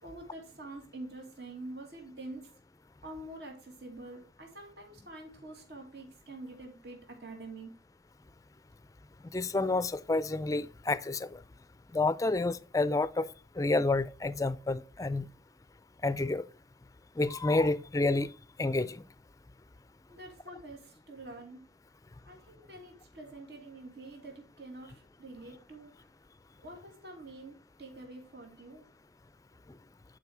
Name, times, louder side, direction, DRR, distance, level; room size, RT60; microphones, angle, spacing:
voice 1, 0.0-2.5 3.0-7.7 20.1-21.6 22.3-25.9 26.6-28.8, right 2 dB, 65° right, 2.4 m, -46 dB
voice 2, 9.3-11.4 11.9-13.3 13.6-15.3 16.0-16.4 17.2-18.3 18.6-19.0, left 2 dB, 20° left, 0.4 m, -29 dB
11.0 x 5.1 x 4.7 m
head